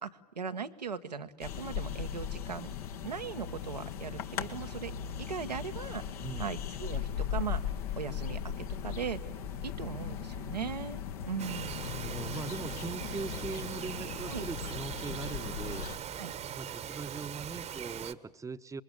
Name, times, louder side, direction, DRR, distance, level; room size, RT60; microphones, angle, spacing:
voice 1, 0.0-2.7 3.0-4.9 5.2-6.0 6.4-9.2 9.6-11.0 11.3-11.8 14.3-14.4 16.2-16.3, right 6 dB, 85° right, 7 dB, 1.3 m, -39 dB
sound 1, 1.4-16.0, left 8 dB, 65° left, 1.8 m, -38 dB
voice 2, 6.2-6.6 11.4-15.9 16.5-18.8, right 4 dB, 15° right, 13 dB, 1.1 m, -41 dB
Bird vocalization bird call bird song, 11.4-18.1, right 9 dB, 35° right, 1.3 m, -41 dB
27.0 x 22.0 x 9.8 m, 0.94 s
figure-of-eight pair, 75°, 21 cm